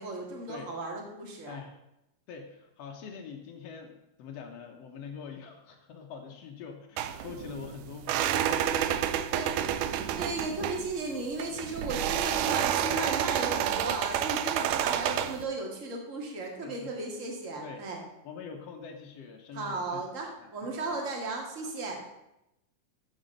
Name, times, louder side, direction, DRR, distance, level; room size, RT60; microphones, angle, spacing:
voice 1, 0.0-1.6 9.3-9.5 10.2-18.0 19.5-22.1, right 3 dB, 30° right, 0 dB, 1.5 m, -35 dB
voice 2, 2.3-9.3 9.6-9.8 12.8-13.0 14.9-15.2 16.6-16.9 17.6-17.8 18.2-20.0 20.4-21.0 21.6-21.7, left 6 dB, 75° left, 2 dB, 1.4 m, -44 dB
sound 1, 7.0-15.4, right 10 dB, 85° right, 1.8 m, -29 dB
13.5 x 4.5 x 6.5 m, 0.88 s
omnidirectional pair, 4.3 m